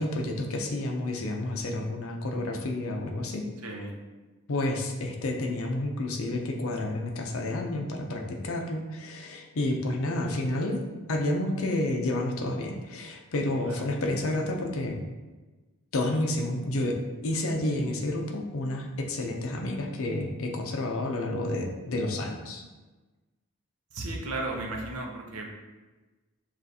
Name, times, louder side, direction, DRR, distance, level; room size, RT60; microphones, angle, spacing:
voice 1, 0.0-3.5 4.5-15.0 15.9-17.0 17.2-22.6, left 1 dB, 70° left, 3 dB, 0.6 m, -30 dB
voice 2, 3.6-3.9 13.6-13.8 23.9-25.6, right 2 dB, 90° right, 0 dB, 0.7 m, -35 dB
6.4 x 2.5 x 2.7 m, 1.2 s
head